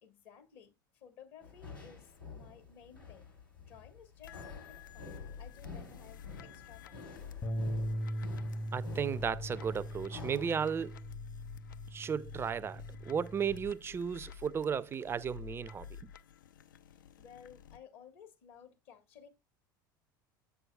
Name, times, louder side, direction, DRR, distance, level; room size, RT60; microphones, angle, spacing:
voice 1, 0.0-3.3 3.7-7.1 16.9-19.3, left 8 dB, 55° left, 1.4 m, -57 dB
sound 1, 1.4-10.8, left 3 dB, 90° left, 2.3 m, -50 dB
sound 2, 4.2-17.8, left 7 dB, 75° left, 0.4 m, -50 dB
Bass guitar, 7.4-13.7, equal, 35° left, 0.9 m, -40 dB
voice 2, 8.7-10.9 11.9-15.9, right 7 dB, 20° right, 0.4 m, -34 dB
7.8 x 6.1 x 2.3 m
figure-of-eight pair, 70°, 11 cm